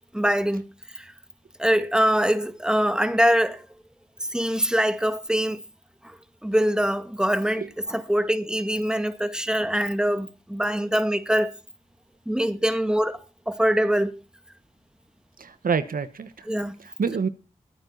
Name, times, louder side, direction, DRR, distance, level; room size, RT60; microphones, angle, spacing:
voice 1, 0.1-0.6 0.9-1.1 1.6-3.6 4.3-5.6 6.4-11.5 12.3-13.2 13.5-14.1 16.5-16.7, equal, 5° right, 2.0 m, -23 dB
voice 2, 15.4-16.4 16.8-17.3, right 5 dB, 85° right, 1.3 m, -27 dB
23.0 x 9.1 x 4.1 m
cardioid pair, 55°, 14 cm